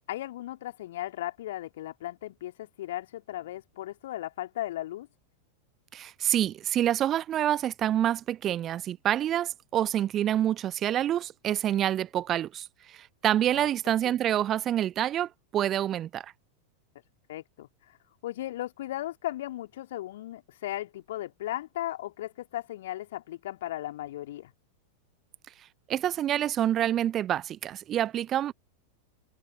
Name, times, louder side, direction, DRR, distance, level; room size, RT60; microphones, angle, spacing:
voice 1, 0.1-5.1 13.5-13.7 14.0-14.2 17.3-18.0 18.2-24.5, left 14 dB, 55° left, 3.2 m, -36 dB
voice 2, 5.9-16.3 25.9-28.5, right 11 dB, 30° right, 0.6 m, -27 dB
figure-of-eight pair, 90°, 0 cm